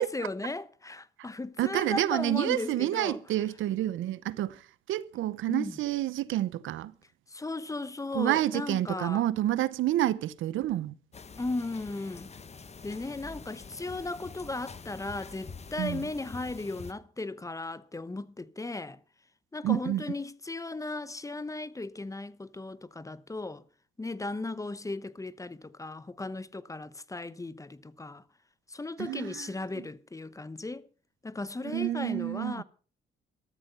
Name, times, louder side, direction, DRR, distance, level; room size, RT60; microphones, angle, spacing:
voice 1, 0.0-3.2 5.5-5.8 7.3-9.2 11.4-12.3 12.8-19.0 19.5-23.6 24.0-28.2 28.7-30.9 31.2-32.6, left 2 dB, 15° left, 0.8 m, -36 dB
voice 2, 1.6-4.6 4.9-6.9 8.1-10.9 15.8-16.1 19.6-20.0 29.0-29.5 29.7-29.8 31.6-32.6, right 13 dB, 80° right, 0.8 m, -29 dB
sound 1, 11.1-16.9, left 5 dB, 35° left, 1.4 m, -46 dB
13.5 x 13.0 x 5.6 m
cardioid pair, 90°, 20 cm